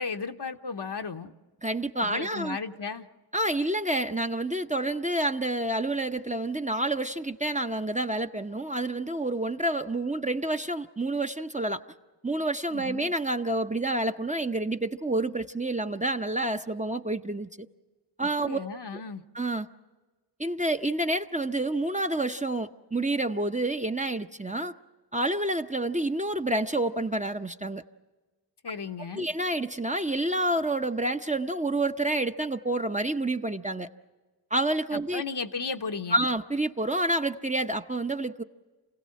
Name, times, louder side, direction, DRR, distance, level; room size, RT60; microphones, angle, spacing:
voice 1, 0.0-1.3 2.0-3.1 12.7-13.1 18.2-19.2 28.6-29.3 34.9-36.2, left 4 dB, 75° left, 6 dB, 0.9 m, -35 dB
voice 2, 1.6-2.6 3.3-11.8 12.2-17.7 18.2-18.6 19.3-19.7 20.4-24.7 25.1-27.8 29.2-33.9 34.5-35.2 36.1-38.4, right 1 dB, 20° right, 6 dB, 0.7 m, -28 dB
27.5 x 16.5 x 7.5 m, 1.3 s
wide cardioid pair, 50°, 41 cm